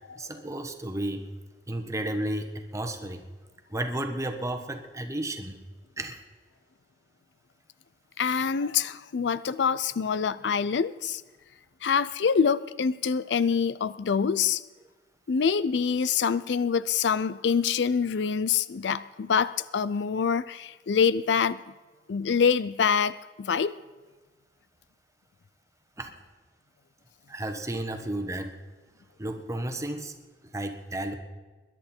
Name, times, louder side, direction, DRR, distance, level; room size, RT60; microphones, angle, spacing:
voice 1, 0.2-1.3 1.7-3.2 3.7-5.6 6.0-6.2 26.0-26.1 27.3-28.5 29.2-30.1 30.4-31.1, right 1 dB, 15° right, 5 dB, 1.3 m, -33 dB
voice 2, 8.2-11.2 11.8-14.6 15.3-21.6 22.1-23.7, left 6 dB, 70° left, 16 dB, 0.4 m, -25 dB
21.0 x 10.5 x 4.4 m, 1.3 s
head